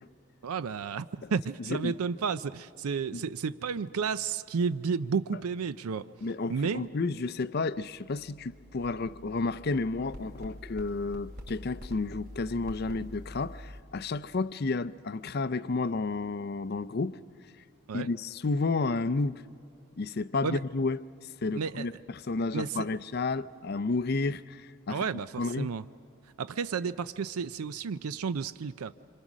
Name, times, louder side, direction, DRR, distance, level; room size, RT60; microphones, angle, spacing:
voice 1, 0.4-6.1 6.5-6.9 17.9-18.1 20.4-20.6 21.5-21.9 22.5-22.7 24.9-25.3 25.6-25.8 26.4-28.9, right 5 dB, 90° right, 0.5 m, -32 dB
voice 2, 1.6-1.9 3.1-3.2 6.2-17.2 17.9-19.4 20.0-25.0 25.4-25.7, left 3 dB, 45° left, 0.5 m, -31 dB
sound 1, 7.9-13.8, equal, 50° right, 2.7 m, -46 dB
26.5 x 26.0 x 6.2 m
head